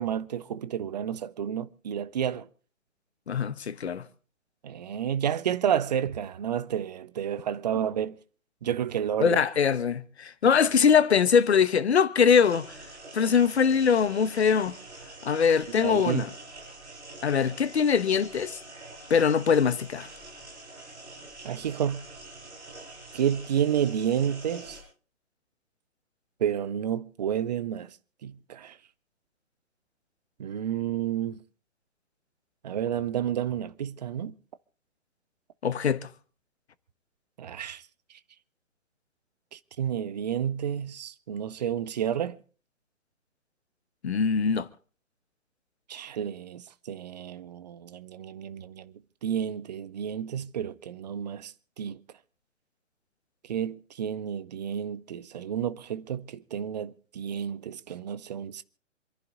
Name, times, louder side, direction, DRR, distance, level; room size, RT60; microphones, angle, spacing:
voice 1, 0.0-2.5 4.6-8.2 8.6-9.4 15.8-16.3 21.4-22.1 23.1-24.8 26.4-27.9 28.2-28.8 30.4-31.4 32.6-34.3 37.4-37.8 39.5-42.4 45.9-48.9 49.2-52.0 53.5-58.6, right 9 dB, 35° right, 0.8 m, -30 dB
voice 2, 3.3-4.1 9.2-12.7 13.1-14.8 15.2-16.3 17.2-18.6 19.1-20.1 35.6-36.1 44.0-44.7, left 6 dB, 55° left, 1.1 m, -22 dB
sound 1, 12.4-24.8, right 2 dB, 60° right, 6.7 m, -45 dB
27.0 x 11.0 x 3.9 m
figure-of-eight pair, 130°, 38 cm